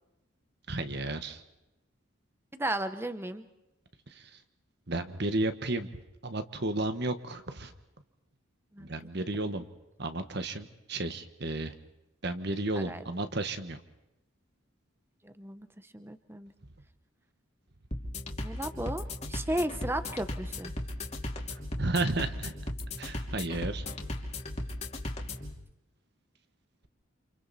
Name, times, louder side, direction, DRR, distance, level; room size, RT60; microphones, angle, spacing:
voice 1, 0.7-1.4 4.1-4.4 4.9-5.9 6.2-7.7 8.8-9.7 10.0-11.7 12.2-13.8 21.5-22.5 23.0-23.8, right 2 dB, 50° right, 9 dB, 1.5 m, -33 dB
voice 2, 2.5-3.5 8.7-9.2 12.7-13.0 15.2-16.5 18.4-20.7, right 1 dB, 10° right, 11 dB, 0.9 m, -35 dB
sound 1, 17.9-25.5, left 1 dB, 30° left, 2.8 m, -37 dB
29.5 x 28.0 x 4.3 m, 0.96 s
head